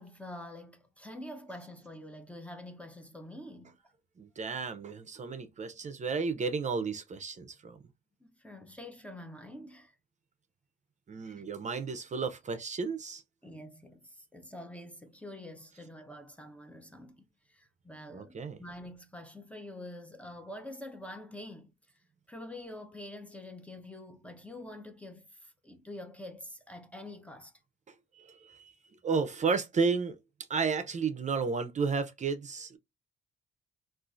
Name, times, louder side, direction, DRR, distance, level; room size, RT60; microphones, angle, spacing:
voice 1, 0.0-3.8 8.2-9.9 11.2-11.4 13.4-22.0 22.3-27.5, left 1 dB, 5° left, 0.6 m, -46 dB
voice 2, 4.2-7.8 11.1-13.2 18.1-18.6 28.1-28.7 29.0-30.2 30.5-32.8, right 5 dB, 35° right, 0.6 m, -32 dB
3.6 x 2.5 x 2.4 m
cardioid pair, 90°, 20 cm